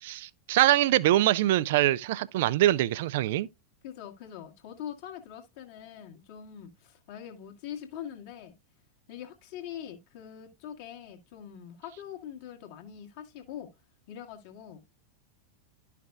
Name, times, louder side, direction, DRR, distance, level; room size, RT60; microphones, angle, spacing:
voice 1, 0.0-3.5, right 14 dB, 55° right, 0.4 m, -24 dB
voice 2, 3.8-8.5 9.1-13.7 14.1-14.8, left 9 dB, 50° left, 1.6 m, -43 dB
11.5 x 5.8 x 2.3 m
figure-of-eight pair, 90°, 0 cm